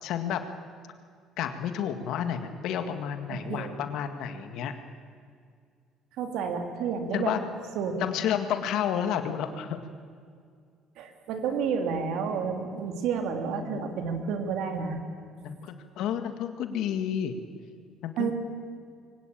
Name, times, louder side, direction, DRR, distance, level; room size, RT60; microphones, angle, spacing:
voice 1, 0.0-0.4 1.4-4.7 7.1-7.5 8.0-9.8 13.5-14.0 15.4-17.4 18.0-18.3, left 9 dB, 70° left, 8 dB, 1.8 m, -31 dB
voice 2, 3.3-3.7 6.2-7.3 7.7-8.1 11.0-15.0 18.2-18.3, right 6 dB, 75° right, 5 dB, 3.0 m, -30 dB
23.0 x 17.5 x 8.8 m, 2.2 s
supercardioid pair, 90°, 0 cm